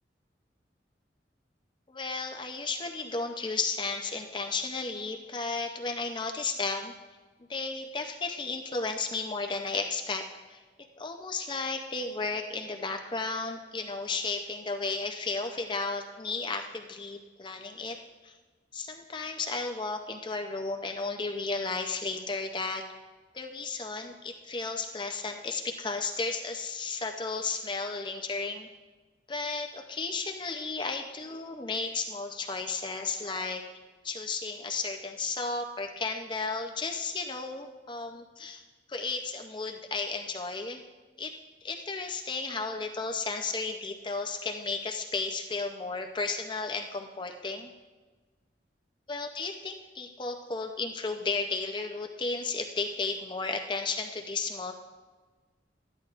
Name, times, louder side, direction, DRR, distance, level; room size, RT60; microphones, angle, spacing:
voice 1, 1.9-6.9 7.5-10.6 11.0-18.0 18.2-18.3 18.7-22.8 23.3-28.7 29.3-33.6 34.0-38.6 38.9-40.8 41.2-41.3 41.6-47.7 49.1-54.7, left 4 dB, 25° left, 4 dB, 0.5 m, -33 dB
13.5 x 10.5 x 2.5 m, 1.3 s
head